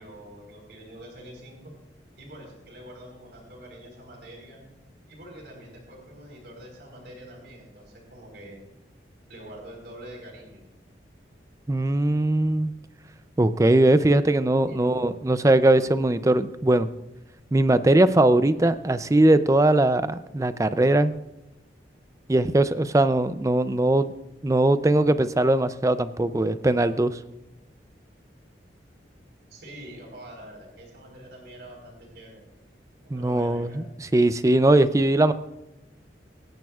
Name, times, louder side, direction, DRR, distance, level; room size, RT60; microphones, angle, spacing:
voice 1, 0.0-1.8 2.2-4.6 5.1-8.6 9.3-10.6 14.7-15.0 29.5-32.4 33.1-33.8, right 1 dB, 70° right, -1 dB, 4.3 m, -45 dB
voice 2, 11.7-12.7 13.4-16.9 17.5-21.1 22.3-24.1 24.4-27.2 33.1-35.3, right 1 dB, 15° right, 13 dB, 0.4 m, -20 dB
24.5 x 10.5 x 2.4 m, 0.97 s
head